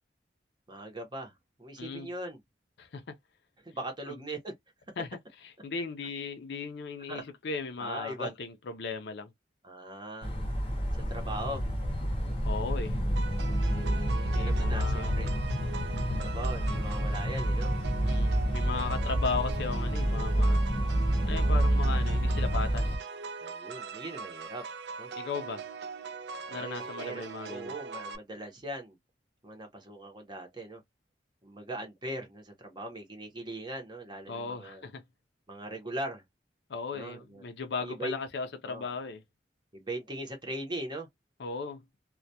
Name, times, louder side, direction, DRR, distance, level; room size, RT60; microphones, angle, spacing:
voice 1, 0.7-2.4 3.6-4.5 7.1-7.2 7.8-8.3 9.6-10.3 11.1-11.6 13.4-15.3 16.2-17.7 18.6-19.2 23.4-24.6 25.0-25.1 26.5-29.0 29.4-30.8 31.4-34.8 35.5-36.2 36.9-37.4 37.8-38.2 38.6-38.9 39.7-41.1, right 1 dB, 25° right, 0.7 m, -40 dB
voice 2, 1.8-2.1 2.8-3.1 4.1-4.2 5.0-9.3 12.5-13.0 14.3-15.1 18.1-20.6 21.3-23.0 25.1-25.7 26.5-27.7 34.3-35.0 36.7-39.2 41.4-41.8, left 4 dB, 65° left, 0.4 m, -37 dB
sound 1, 10.2-23.0, equal, 30° left, 0.7 m, -28 dB
sound 2, 13.2-28.2, right 5 dB, 65° right, 0.3 m, -41 dB
2.2 x 2.2 x 2.6 m
head